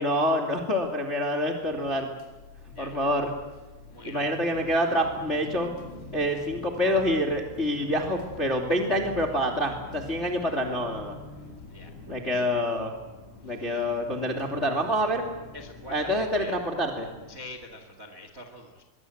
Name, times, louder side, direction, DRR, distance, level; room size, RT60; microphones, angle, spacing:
voice 1, 0.0-2.1 2.8-3.3 4.0-5.7 6.1-11.1 12.1-12.9 13.4-15.3 15.9-17.1, equal, 25° left, 2 dB, 1.6 m, -27 dB
sound 1, 1.6-17.4, left 3 dB, 40° left, 6.2 m, -46 dB
voice 2, 2.7-3.1 3.9-4.4 11.7-11.9 12.2-12.4 13.5-13.8 15.5-16.6 17.3-18.8, left 2 dB, 35° right, 6 dB, 1.4 m, -45 dB
24.5 x 22.5 x 8.0 m, 1.1 s
omnidirectional pair, 5.9 m